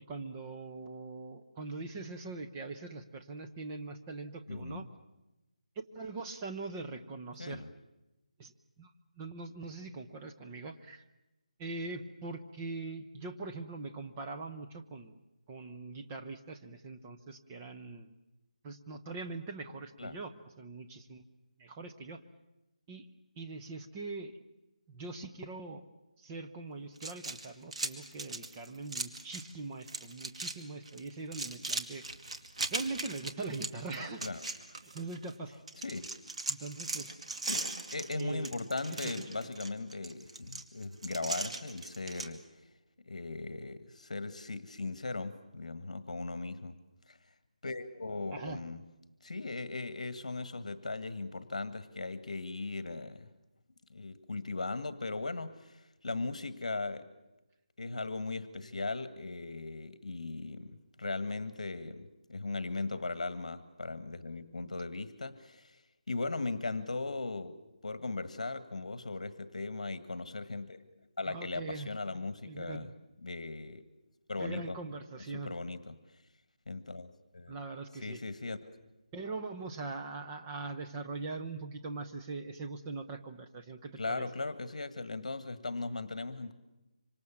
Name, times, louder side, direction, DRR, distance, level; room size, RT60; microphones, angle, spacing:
voice 1, 0.0-4.9 5.9-7.6 8.4-8.5 8.8-8.9 9.2-11.0 11.6-15.1 15.5-18.1 18.6-21.2 21.6-22.2 22.9-23.1 23.4-24.4 24.9-25.8 26.2-32.0 32.7-34.2 34.9-35.6 36.5-37.1 38.2-38.5 38.9-39.0 48.3-48.6 71.2-71.9 72.4-72.9 74.4-75.5 77.5-78.2 79.1-84.3, right 3 dB, 10° right, 5 dB, 0.8 m, -42 dB
voice 2, 4.5-4.9 7.4-7.7 20.0-20.2 34.2-34.4 35.8-36.0 37.4-42.4 43.0-46.8 47.1-47.2 47.6-48.8 49.2-53.3 53.9-57.1 57.8-65.8 66.1-70.8 71.2-72.9 73.2-73.8 74.3-74.8 75.3-76.0 76.7-77.5 78.0-78.6 84.0-86.5, left 3 dB, 65° left, 13 dB, 1.7 m, -38 dB
sound 1, 27.0-29.5 29.8-30.6 30.9-35.3 35.7-42.3, right 3 dB, 55° right, 2.2 m, -39 dB
26.0 x 25.5 x 7.2 m, 0.99 s
figure-of-eight pair, 175°, 4 cm